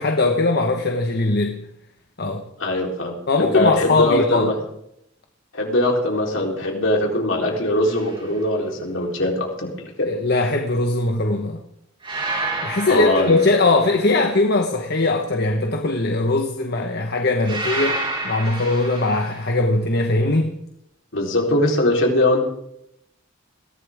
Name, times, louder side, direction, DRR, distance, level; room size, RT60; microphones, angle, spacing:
voice 1, 0.0-1.7 2.2-2.4 3.3-4.5 10.0-11.6 12.6-18.0 18.2-20.5, left 2 dB, 55° left, 1.3 m, -20 dB
voice 2, 2.6-4.5 5.5-10.1 12.9-13.4 21.1-22.5, left 1 dB, 75° left, 4.0 m, -21 dB
sound 1, 7.9-8.2 12.0-14.2 17.4-19.5, right 2 dB, 25° right, 5.2 m, -29 dB
21.5 x 15.5 x 3.7 m
head